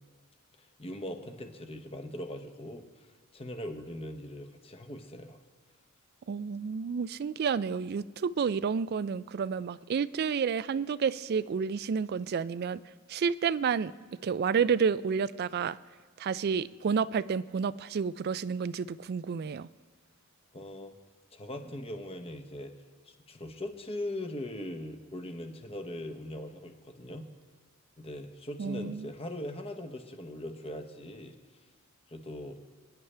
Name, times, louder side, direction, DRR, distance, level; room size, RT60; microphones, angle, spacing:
voice 1, 0.6-3.1 3.3-5.4 20.5-20.9 21.3-22.7 23.1-27.3 28.0-31.4 32.1-32.6, left 1 dB, 25° left, 5 dB, 1.0 m, -40 dB
voice 2, 6.3-12.8 13.1-13.9 14.2-15.8 16.2-19.7 28.6-29.1, right 6 dB, 45° right, 18 dB, 0.3 m, -30 dB
26.0 x 9.9 x 3.4 m, 1.5 s
head